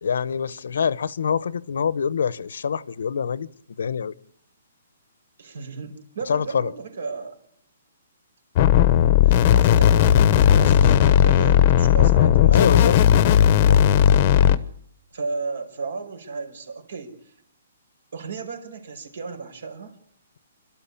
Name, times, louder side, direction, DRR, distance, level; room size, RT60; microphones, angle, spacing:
voice 1, 0.0-3.5 3.8-4.1 6.3-6.7 12.5-13.0 13.6-13.8, left 6 dB, 75° left, 0.9 m, -25 dB
voice 2, 5.4-7.4 9.2-13.0 14.3-14.6 15.1-17.3 18.1-20.0, right 4 dB, 70° right, 5.4 m, -34 dB
sound 1, 8.6-14.6, left 10 dB, 30° left, 0.9 m, -16 dB
27.5 x 12.5 x 8.5 m
hypercardioid pair, 170°, 0 cm